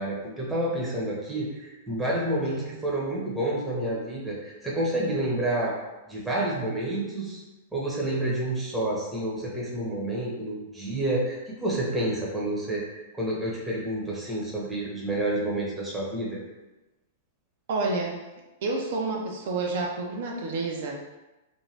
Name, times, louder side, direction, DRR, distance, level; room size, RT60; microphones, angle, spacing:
voice 1, 0.0-5.7 6.1-7.4 7.7-16.4, right 1 dB, 5° right, -6 dB, 0.8 m, -29 dB
voice 2, 2.4-2.8 17.7-18.2 18.6-21.0, right 3 dB, 65° right, 0 dB, 0.5 m, -29 dB
2.6 x 2.2 x 3.2 m, 1.1 s
hypercardioid pair, 135°, 0 cm